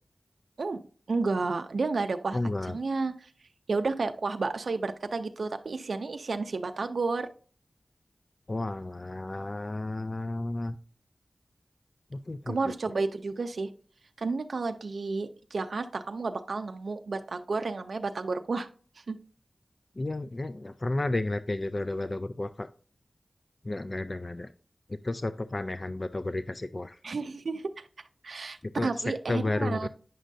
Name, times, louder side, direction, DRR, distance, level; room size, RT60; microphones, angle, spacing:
voice 1, 1.1-3.3 3.7-7.3 12.5-13.7 14.2-18.7 19.0-19.2 27.0-27.9 28.2-29.9, right 3 dB, 85° right, 8 dB, 0.4 m, -31 dB
voice 2, 2.3-2.8 8.5-10.8 12.1-12.7 20.0-22.7 23.6-24.5 24.9-27.0 28.6-28.9 29.3-29.9, left 2 dB, 40° left, 12 dB, 0.3 m, -32 dB
9.0 x 6.2 x 2.6 m, 0.42 s
wide cardioid pair, 75°, 0 cm